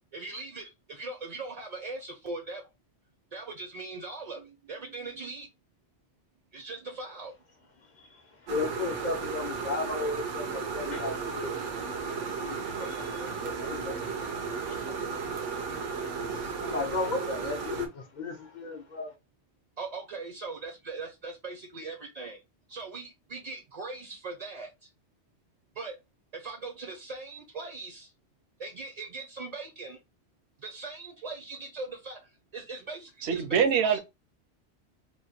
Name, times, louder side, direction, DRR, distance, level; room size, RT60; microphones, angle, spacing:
voice 1, 0.1-2.7 3.3-5.5 6.5-7.3 15.1-15.2 19.8-22.4 22.7-24.9 25.7-26.0 26.3-28.1 28.6-30.0 30.6-34.0, right 3 dB, 40° right, 0.6 m, -40 dB
voice 2, 8.5-11.5 11.7-15.2 16.6-19.1, left 3 dB, 50° left, 0.6 m, -35 dB
sound 1, 8.5-17.9, right 5 dB, 80° right, 1.1 m, -34 dB
voice 3, 33.2-34.0, right 7 dB, 65° right, 0.9 m, -24 dB
3.1 x 2.2 x 4.1 m
omnidirectional pair, 1.2 m